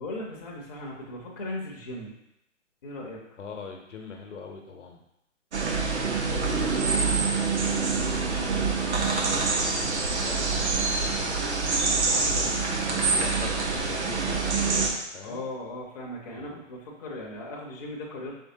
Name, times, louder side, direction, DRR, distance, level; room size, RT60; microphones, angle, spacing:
voice 1, 0.0-2.1 2.8-3.2 8.3-8.6 15.2-18.3, left 1 dB, 30° left, -3 dB, 0.6 m, -37 dB
voice 2, 3.4-5.0 5.9-8.8 9.7-11.6 12.1-15.4 16.3-16.6, left 5 dB, 65° left, 2 dB, 0.9 m, -43 dB
sound 1, 5.5-14.9, right 4 dB, 60° right, 0.8 m, -26 dB
4.4 x 3.2 x 2.7 m, 0.83 s
figure-of-eight pair, 140°, 39 cm